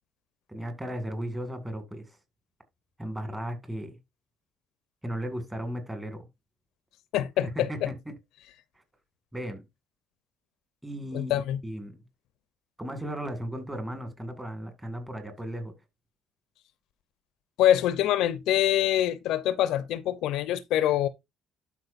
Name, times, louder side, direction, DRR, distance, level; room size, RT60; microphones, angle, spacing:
voice 1, 0.5-2.2 3.0-4.0 5.0-6.3 7.6-8.1 9.3-9.6 10.8-11.3 11.6-12.0 12.8-15.7, equal, 10° right, 1.9 m, -35 dB
voice 2, 7.1-7.9 11.1-11.6 17.6-21.1, left 12 dB, 70° left, 0.7 m, -25 dB
12.0 x 4.7 x 2.5 m
cardioid pair, 125°, 0 cm